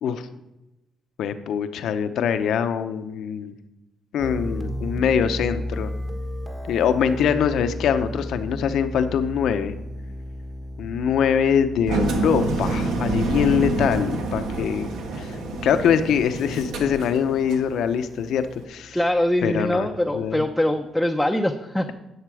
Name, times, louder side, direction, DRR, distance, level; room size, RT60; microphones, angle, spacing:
voice 1, 1.2-3.5 4.1-5.9 6.6-9.7 10.8-14.9 15.2-19.0 19.4-19.9 20.1-20.4, left 8 dB, 75° left, 10 dB, 0.7 m, -23 dB
sound 1, 4.2-20.1, equal, 20° right, 1.2 m, -35 dB
Engine, 11.9-17.7, right 2 dB, 85° right, 1.4 m, -27 dB
voice 2, 18.9-21.9, left 1 dB, 5° left, 3 dB, 0.6 m, -23 dB
11.0 x 6.6 x 4.9 m, 0.97 s
cardioid pair, 90°, 0 cm